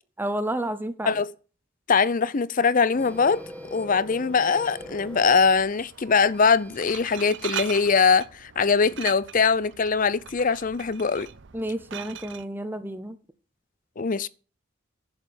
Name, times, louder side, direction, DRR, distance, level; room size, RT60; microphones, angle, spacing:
voice 1, 0.2-1.2 11.5-13.2, right 1 dB, 10° right, 0.7 m, -30 dB
voice 2, 1.9-3.4 3.7-11.3 14.0-14.3, left 5 dB, 40° left, 0.5 m, -22 dB
Printer, 2.9-7.9, equal, 5° left, 1.5 m, -43 dB
Glass, 4.6-12.4, right 10 dB, 60° right, 0.6 m, -40 dB
11.0 x 6.9 x 7.7 m
head